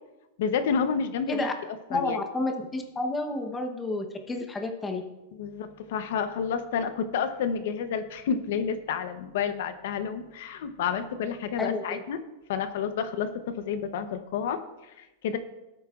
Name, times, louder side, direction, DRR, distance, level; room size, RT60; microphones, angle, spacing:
voice 1, 0.4-1.5 1.9-2.2 5.4-12.2 12.5-15.4, left 7 dB, 60° left, 9 dB, 0.8 m, -30 dB
voice 2, 1.9-5.0 11.6-12.0, left 2 dB, 10° left, 4 dB, 0.9 m, -30 dB
17.0 x 8.8 x 2.4 m, 1.0 s
supercardioid pair, 165°, 0 cm